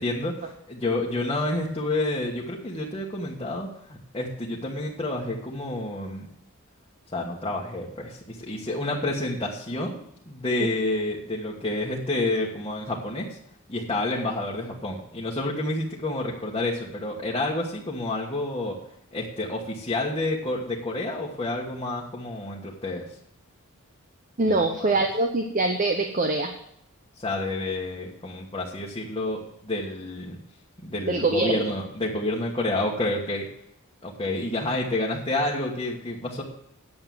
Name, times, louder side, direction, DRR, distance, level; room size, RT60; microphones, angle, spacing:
voice 1, 0.0-6.3 7.1-10.0 10.3-13.4 13.7-18.8 19.1-23.0 24.4-25.0 27.2-30.4 30.8-33.5 34.0-36.4, left 2 dB, 25° left, -4 dB, 1.5 m, -29 dB
voice 2, 24.4-26.5 31.1-31.7, right 2 dB, 40° right, 5 dB, 0.9 m, -24 dB
9.5 x 7.8 x 7.7 m, 0.73 s
head